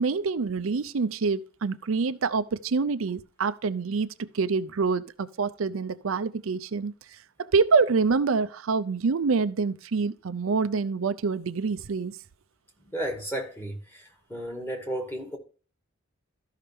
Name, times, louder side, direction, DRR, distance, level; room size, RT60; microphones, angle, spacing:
voice 1, 0.0-6.9 7.4-12.2, right 4 dB, 90° right, 0.5 m, -26 dB
voice 2, 12.8-15.4, right 1 dB, 10° left, 2.1 m, -34 dB
13.5 x 5.6 x 3.6 m
head